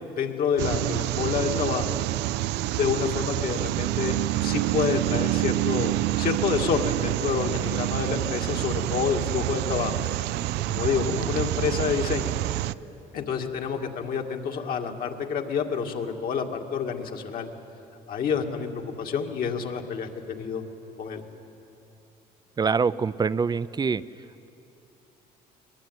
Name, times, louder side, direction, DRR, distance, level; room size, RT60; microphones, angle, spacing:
voice 1, 0.2-2.0 2.8-4.2 4.4-10.0 10.7-12.3 13.1-17.5 18.1-18.7 19.0-20.6 21.0-21.2, left 6 dB, 60° left, 3 dB, 2.1 m, -28 dB
sound 1, 0.6-12.7, right 16 dB, 85° right, 0.5 m, -27 dB
voice 2, 22.6-24.0, right 5 dB, 25° right, 17 dB, 0.5 m, -24 dB
22.0 x 20.5 x 9.3 m, 2.9 s
cardioid pair, 110°, 17 cm